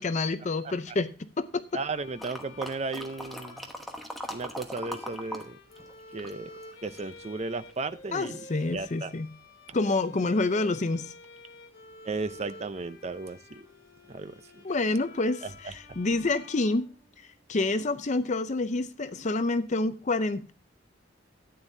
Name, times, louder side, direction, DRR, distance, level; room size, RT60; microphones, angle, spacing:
voice 1, 0.0-1.6 8.1-9.3 9.7-11.1 14.6-16.9 17.5-20.5, left 2 dB, 35° left, 11 dB, 0.5 m, -28 dB
Bowed string instrument, 1.7-17.6, left 2 dB, 75° left, 2.8 m, -50 dB
voice 2, 1.7-3.7 4.3-5.6 6.1-6.5 6.8-9.1 12.0-13.7 14.1-14.6 15.4-15.7, right 3 dB, 35° right, 12 dB, 0.5 m, -35 dB
sound 1, 2.2-5.4 5.7-7.2 7.7-7.8, equal, ahead, 1.1 m, -39 dB
13.0 x 9.1 x 2.6 m, 0.35 s
head